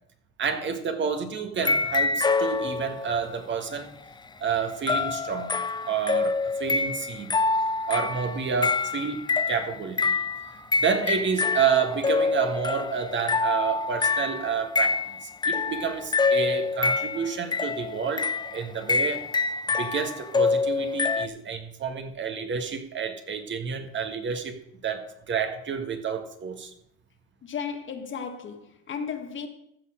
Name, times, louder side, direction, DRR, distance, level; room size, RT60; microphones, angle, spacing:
voice 1, 0.4-4.0 4.4-5.5 5.9-7.4 7.9-9.2 9.5-19.2 19.8-24.5 24.8-26.7, right 6 dB, 35° right, 1.8 m, -29 dB
sound 1, 1.6-3.2 4.9-21.3, left 4 dB, 15° left, 0.6 m, -26 dB
voice 2, 27.4-29.5, left 6 dB, 35° left, 1.7 m, -34 dB
14.5 x 5.8 x 6.3 m
hypercardioid pair, 90°, 33 cm